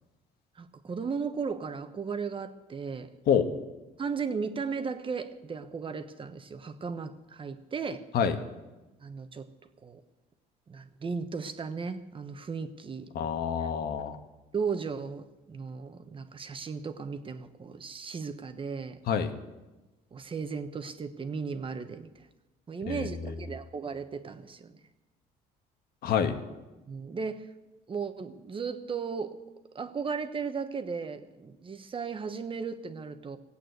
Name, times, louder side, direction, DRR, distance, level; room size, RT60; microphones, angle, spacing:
voice 1, 0.6-3.1 4.0-8.0 9.0-9.5 9.8-10.0 10.7-13.1 13.6-13.7 14.5-19.0 20.1-22.2 22.7-24.8 26.9-27.5 27.9-29.4 29.7-33.4, right 5 dB, 30° right, 9 dB, 1.1 m, -36 dB
voice 2, 13.1-14.2 19.1-19.3 22.9-23.3 26.0-26.4, left 7 dB, 65° left, 7 dB, 1.5 m, -27 dB
17.5 x 8.5 x 8.1 m, 1.1 s
cardioid pair, 110°, 17 cm